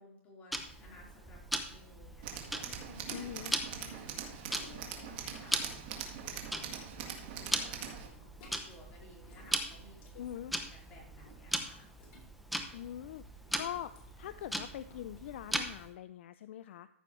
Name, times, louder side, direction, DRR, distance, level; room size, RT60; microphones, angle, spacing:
voice 1, 0.0-1.4 1.7-10.2 10.5-11.9, left 1 dB, 20° left, -3 dB, 4.1 m, -57 dB
Tick-tock, 0.5-15.9, equal, ahead, 0.8 m, -40 dB
sound 1, 2.2-6.7 7.0-15.1, left 2 dB, 40° left, 3.4 m, -59 dB
Tools, 2.2-8.1, right 8 dB, 45° right, 1.9 m, -43 dB
voice 2, 3.1-3.6 10.1-10.5 12.7-13.2 13.6-16.9, left 11 dB, 60° left, 13 dB, 0.4 m, -43 dB
14.0 x 6.9 x 3.2 m, 0.70 s
hypercardioid pair, 150°, 7 cm